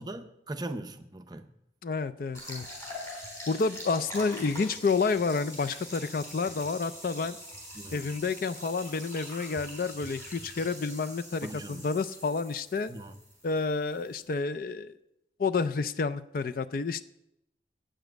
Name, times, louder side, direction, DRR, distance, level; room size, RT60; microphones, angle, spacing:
voice 1, 0.0-1.5 7.7-8.0 11.4-11.9 12.9-13.2, right 1 dB, 20° right, 8 dB, 0.6 m, -40 dB
voice 2, 1.8-2.7 3.5-7.4 7.9-12.9 13.4-14.9 15.4-17.0, left 4 dB, 50° left, 12 dB, 0.4 m, -29 dB
sound 1, 2.3-14.3, equal, 15° left, 3.3 m, -44 dB
8.8 x 7.2 x 7.8 m, 0.84 s
head